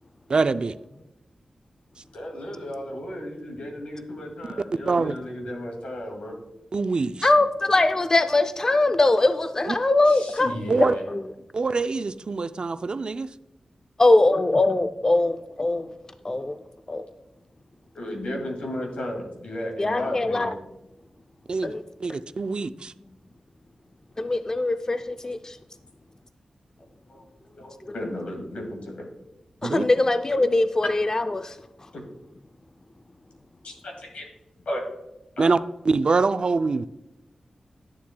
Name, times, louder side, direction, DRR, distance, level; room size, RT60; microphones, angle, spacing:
voice 1, 0.3-0.8 4.9-5.1 6.7-7.3 9.7-9.8 10.7-10.9 11.5-13.3 21.5-21.7 22.0-22.9 29.6-29.9 35.4-35.6 35.9-36.9, right 4 dB, 50° right, 12 dB, 0.3 m, -24 dB
voice 2, 2.1-6.3 10.1-11.0 17.9-20.5 27.1-27.2 27.6-29.1 31.9-32.0 33.6-34.3 34.7-34.8 35.4-35.6, left 1 dB, 90° left, 1 dB, 2.1 m, -34 dB
voice 3, 7.2-10.5 10.8-11.2 14.0-15.9 16.2-16.6 16.9-17.1 19.8-20.5 21.6-21.8 24.2-25.6 29.6-31.6, left 2 dB, 30° left, 9 dB, 0.4 m, -21 dB
11.0 x 7.3 x 2.2 m, 0.94 s
wide cardioid pair, 85°, 2 cm